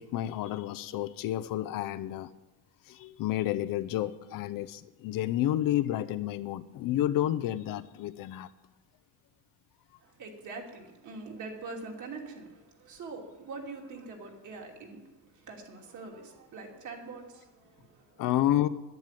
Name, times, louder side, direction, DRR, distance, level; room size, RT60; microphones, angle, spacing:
voice 1, 0.0-2.3 2.9-8.5 18.2-18.7, left 13 dB, 55° left, 10 dB, 0.7 m, -30 dB
voice 2, 10.0-18.3, right 3 dB, 45° right, 1 dB, 2.9 m, -44 dB
11.0 x 10.5 x 9.2 m, 1.1 s
cardioid pair, 160°, 41 cm